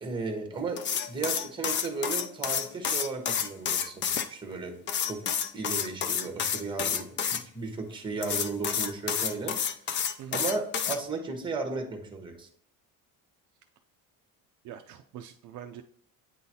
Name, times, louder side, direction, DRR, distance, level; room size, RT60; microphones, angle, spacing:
voice 1, 0.0-4.7 5.1-5.2 5.5-9.5 10.3-12.5, right 3 dB, 15° right, 4 dB, 1.0 m, -35 dB
sound 1, 0.8-4.3 4.9-7.4 8.2-11.0, left 7 dB, 35° left, 0.4 m, -29 dB
voice 2, 14.6-15.8, right 10 dB, 60° right, 5 dB, 0.4 m, -43 dB
8.8 x 3.9 x 2.7 m, 0.66 s
cardioid pair, 155°, 35 cm